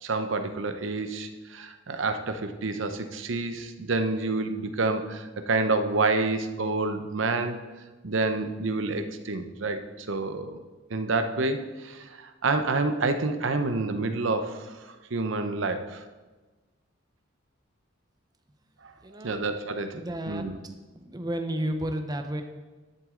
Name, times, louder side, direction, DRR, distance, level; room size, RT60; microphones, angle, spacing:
voice 1, 0.0-7.6 8.0-10.6 10.9-16.0 19.2-20.6, right 3 dB, 65° right, 8 dB, 0.8 m, -28 dB
voice 2, 19.0-19.4 19.9-20.5 20.9-22.4, right 1 dB, 20° right, 6 dB, 0.7 m, -32 dB
10.5 x 7.9 x 3.8 m, 1.3 s
head